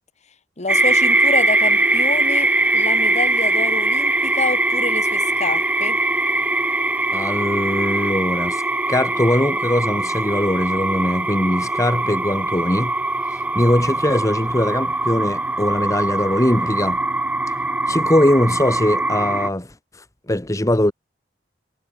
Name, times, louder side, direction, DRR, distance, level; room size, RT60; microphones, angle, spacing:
voice 1, 0.6-6.0, left 3 dB, 40° left, 1.9 m, -27 dB
sound 1, 0.7-19.5, right 2 dB, 10° right, 0.6 m, -21 dB
voice 2, 7.1-8.6 8.9-12.9 13.3-17.0 17.9-19.7 20.3-20.9, left 1 dB, 20° left, 1.4 m, -20 dB
head